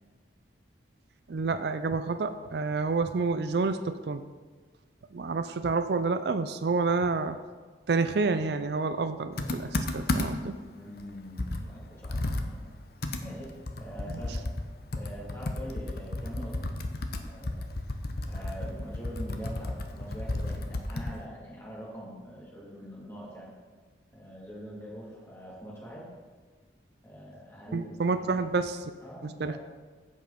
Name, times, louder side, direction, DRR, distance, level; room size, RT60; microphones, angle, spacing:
voice 1, 1.3-4.2 5.1-7.4 7.9-10.6 14.1-14.2 27.7-28.8 29.2-29.6, right 4 dB, 60° right, 10 dB, 0.4 m, -29 dB
Computer keyboard, 9.4-10.5 11.0-11.1 11.4-21.2, left 2 dB, 55° left, 0.8 m, -33 dB
voice 2, 10.7-12.7 13.2-14.5 14.9-16.7 17.1-17.7 18.3-23.5 24.1-26.1 27.0-28.0 29.0-29.6, equal, 15° left, -6 dB, 3.1 m, -43 dB
15.0 x 5.4 x 5.2 m, 1.4 s
head